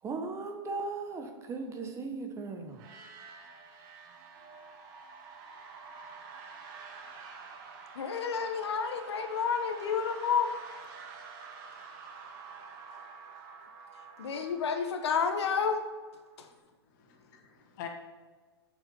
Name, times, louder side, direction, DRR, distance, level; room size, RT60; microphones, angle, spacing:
voice 1, 0.0-2.9, right 3 dB, 20° right, 5 dB, 1.1 m, -37 dB
sound 1, 2.7-16.4, right 5 dB, 50° right, 1.7 m, -49 dB
voice 2, 7.9-10.5 14.2-15.9 16.4-16.5, left 6 dB, 75° left, 6 dB, 1.1 m, -30 dB
voice 3, 16.4-17.9, left 10 dB, 50° left, 2 dB, 2.0 m, -47 dB
8.5 x 6.9 x 5.5 m, 1.4 s
hypercardioid pair, 125°, 14 cm